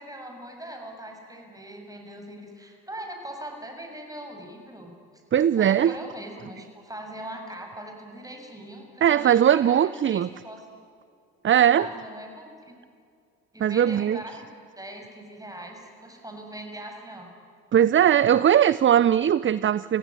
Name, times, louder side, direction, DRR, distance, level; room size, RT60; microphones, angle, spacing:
voice 1, 0.0-4.9 5.4-10.7 11.5-12.8 13.5-14.5 14.8-17.3, right 1 dB, 10° right, 3 dB, 7.1 m, -41 dB
voice 2, 5.3-6.0 9.0-10.3 11.4-11.9 13.6-14.2 17.7-20.0, right 10 dB, 35° right, 18 dB, 0.6 m, -19 dB
27.0 x 16.0 x 9.9 m, 2.3 s
supercardioid pair, 60°, 34 cm